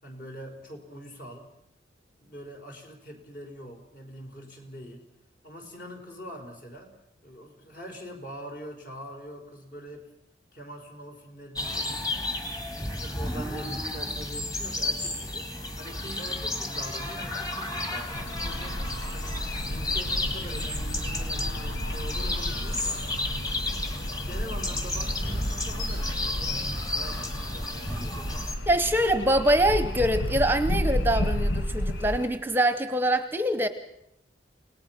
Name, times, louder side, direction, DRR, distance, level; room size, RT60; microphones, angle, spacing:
voice 1, 0.0-1.5 2.2-5.1 5.4-7.0 7.2-10.1 10.5-12.1 12.7-15.5 15.8-18.8 19.1-23.1 24.0-28.4, equal, 50° left, 2 dB, 4.9 m, -44 dB
sound 1, 11.6-28.5, left 2 dB, 20° left, 2.2 m, -32 dB
sound 2, 18.1-32.3, equal, 85° left, 1.2 m, -32 dB
voice 2, 28.7-33.7, right 1 dB, 10° right, 10 dB, 0.8 m, -24 dB
29.5 x 18.5 x 5.9 m, 0.81 s
head